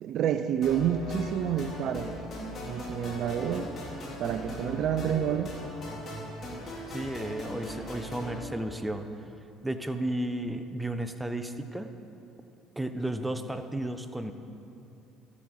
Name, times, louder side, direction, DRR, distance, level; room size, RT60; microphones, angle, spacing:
voice 1, 0.0-2.1 2.7-3.7 4.2-5.6, right 9 dB, 60° right, 10 dB, 0.5 m, -29 dB
sound 1, 0.6-8.4, left 1 dB, 50° left, 3.4 m, -39 dB
voice 2, 6.9-9.1 9.6-11.9 12.8-14.3, right 1 dB, 10° right, 8 dB, 0.9 m, -33 dB
13.0 x 8.6 x 6.4 m, 2.8 s
supercardioid pair, 75°, 0 cm